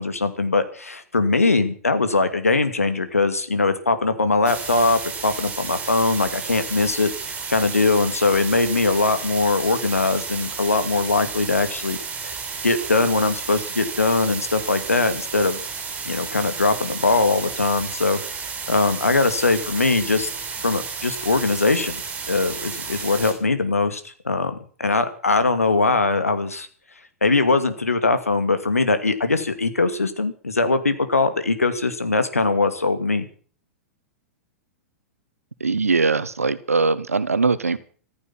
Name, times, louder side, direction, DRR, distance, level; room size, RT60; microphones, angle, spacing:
voice 1, 0.0-12.0 12.2-12.4 12.6-15.6 16.1-20.3 20.6-22.0 22.3-26.7 27.2-33.3, left 3 dB, 85° left, 10 dB, 2.4 m, -21 dB
sound 1, 4.4-23.3, right 5 dB, 20° right, 7.4 m, -32 dB
voice 2, 35.6-37.8, right 4 dB, 80° right, 14 dB, 1.5 m, -21 dB
15.0 x 14.0 x 5.9 m, 0.44 s
figure-of-eight pair, 100°, 8 cm